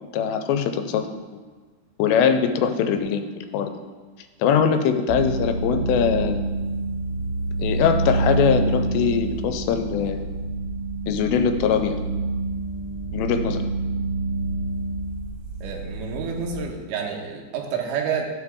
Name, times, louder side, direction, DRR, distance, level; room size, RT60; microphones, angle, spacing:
voice 1, 0.1-1.4 2.0-3.7 4.4-6.4 7.6-10.2 11.1-12.0 13.1-13.6, left 7 dB, 90° left, 7 dB, 2.9 m, -22 dB
sound 1, 5.1-16.6, right 3 dB, 90° right, 3.0 m, -27 dB
voice 2, 15.6-18.3, right 6 dB, 70° right, 0 dB, 2.2 m, -29 dB
14.0 x 4.9 x 3.5 m, 1.4 s
omnidirectional pair, 4.9 m